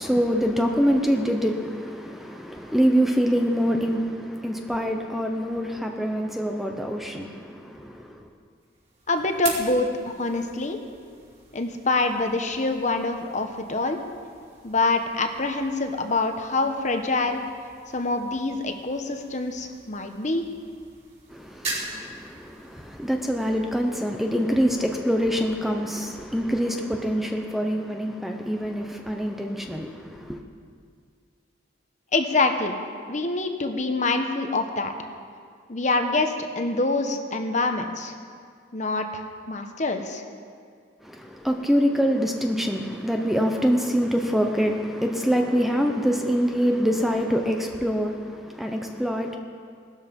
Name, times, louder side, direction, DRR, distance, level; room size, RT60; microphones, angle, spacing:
voice 1, 0.0-8.3 21.3-30.4 41.0-49.4, equal, ahead, 0.8 m, -25 dB
sound 1, 8.6-25.5, right 3 dB, 35° right, 3.8 m, -42 dB
voice 2, 9.1-10.8 11.5-14.0 14.6-17.4 17.9-20.4 32.1-32.8 33.1-34.9 35.7-38.1 38.7-40.2, left 3 dB, 40° left, 1.1 m, -25 dB
18.0 x 13.0 x 5.3 m
head